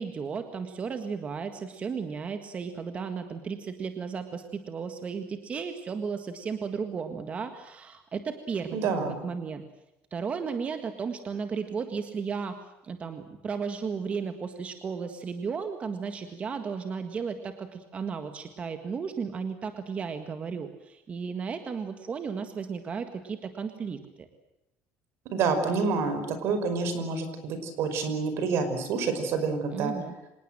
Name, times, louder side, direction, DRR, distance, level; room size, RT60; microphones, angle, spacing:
voice 1, 0.0-9.6 10.1-12.6 12.8-24.3 29.7-30.2, right 5 dB, 25° right, 7 dB, 1.7 m, -34 dB
voice 2, 8.7-9.2 25.3-29.9, right 4 dB, 55° right, 9 dB, 5.3 m, -28 dB
26.0 x 20.0 x 7.6 m, 0.93 s
cardioid pair, 165°, 5 cm